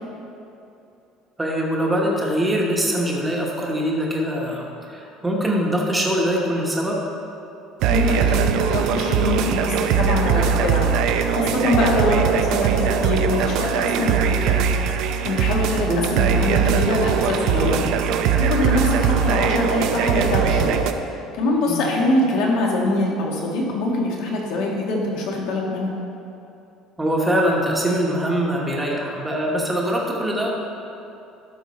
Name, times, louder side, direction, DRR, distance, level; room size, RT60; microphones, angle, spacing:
voice 1, 1.4-7.0 15.6-16.0 21.7-21.8 27.0-30.5, equal, 5° right, -2 dB, 1.1 m, -23 dB
sound 1, 7.8-20.9, right 7 dB, 60° right, 0.5 m, -21 dB
voice 2, 7.9-14.6 15.2-17.9 18.4-20.7 21.3-25.9, left 2 dB, 70° left, -2 dB, 1.8 m, -23 dB
12.0 x 6.0 x 4.2 m, 2.7 s
cardioid pair, 170°, 0 cm